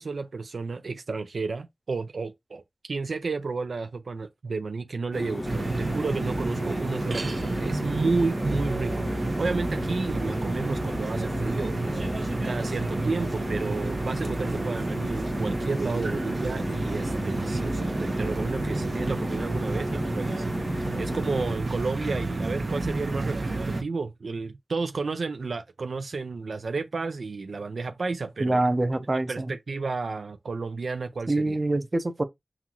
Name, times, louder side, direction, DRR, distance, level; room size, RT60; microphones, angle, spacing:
voice 1, 0.0-12.0 12.4-28.6 29.3-31.6, right 4 dB, 85° right, 0.4 m, -32 dB
sound 1, 5.1-21.6, left 1 dB, 35° left, 0.6 m, -35 dB
sound 2, 5.4-23.8, right 2 dB, 65° right, 1.0 m, -30 dB
voice 2, 28.4-29.5 31.3-32.2, right 2 dB, 40° right, 0.7 m, -25 dB
5.6 x 2.4 x 2.9 m
wide cardioid pair, 50°, 0 cm